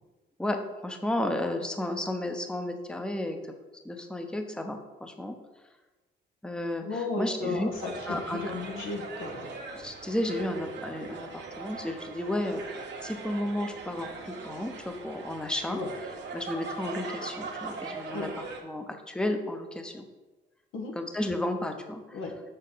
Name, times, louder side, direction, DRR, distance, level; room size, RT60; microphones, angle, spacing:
voice 1, 0.4-3.5 3.8-5.3 6.4-7.7 8.0-8.4 9.7-15.8 16.3-18.3 18.6-20.0 21.0-22.2, left 1 dB, 5° left, 5 dB, 0.8 m, -33 dB
voice 2, 6.8-9.5 15.7-15.9 18.1-18.3 20.7-20.9 22.1-22.4, left 3 dB, 85° left, 2 dB, 1.5 m, -34 dB
sound 1, 7.7-18.6, right 4 dB, 60° right, 1.4 m, -41 dB
6.5 x 6.3 x 4.0 m, 1.1 s
cardioid pair, 90°, 20 cm